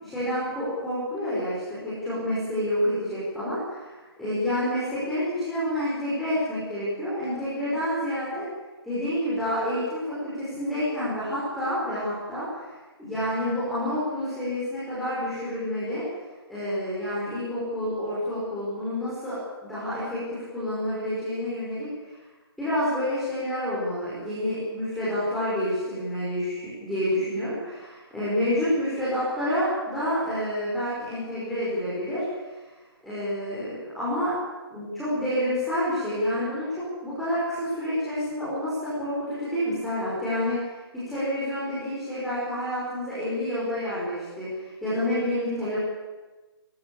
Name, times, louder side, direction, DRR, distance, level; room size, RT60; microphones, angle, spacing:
voice 1, 0.0-8.5 8.8-12.6 13.0-16.0 16.5-19.4 19.6-21.9 22.6-32.2 33.0-34.3 34.7-40.8 41.1-45.8, left 1 dB, ahead, -12 dB, 5.0 m, -28 dB
27.5 x 14.5 x 8.5 m, 1.2 s
hypercardioid pair, 175°, 14 cm